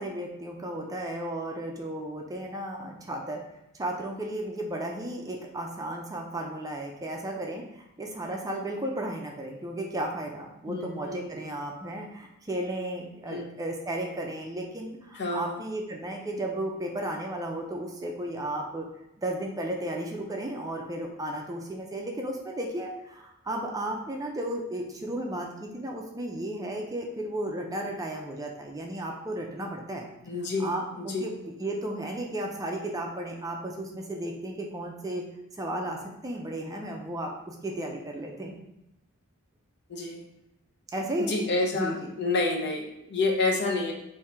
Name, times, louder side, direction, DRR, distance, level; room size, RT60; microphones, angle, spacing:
voice 1, 0.0-3.4 3.8-18.9 19.2-30.0 30.6-31.3 31.6-35.2 35.5-38.5 40.9-42.1, right 1 dB, 15° right, 1 dB, 0.4 m, -34 dB
voice 2, 10.7-11.3 13.3-13.5 15.1-15.6 30.3-31.3 39.9-40.2 41.2-43.9, left 3 dB, 55° left, 0 dB, 0.7 m, -29 dB
3.6 x 2.7 x 4.2 m, 0.88 s
head